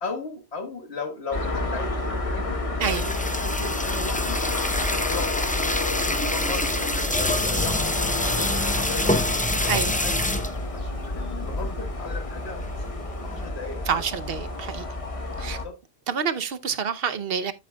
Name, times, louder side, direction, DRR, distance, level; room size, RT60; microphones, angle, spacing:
voice 1, 0.0-4.4 4.8-5.7 6.3-9.3 9.6-10.1 10.7-12.9 13.2-14.4 15.4-15.8, left 3 dB, 90° left, 1.8 m, -37 dB
sound 1, 1.3-15.6, left 2 dB, 35° left, 1.2 m, -29 dB
sound 2, 2.8-10.6 11.2-11.3 11.5-11.7 12.2-13.5, left 1 dB, 10° left, 0.6 m, -27 dB
voice 2, 13.9-14.9 15.4-15.6 16.1-17.5, right 7 dB, 65° right, 1.0 m, -27 dB
12.0 x 7.6 x 2.3 m
omnidirectional pair, 1.1 m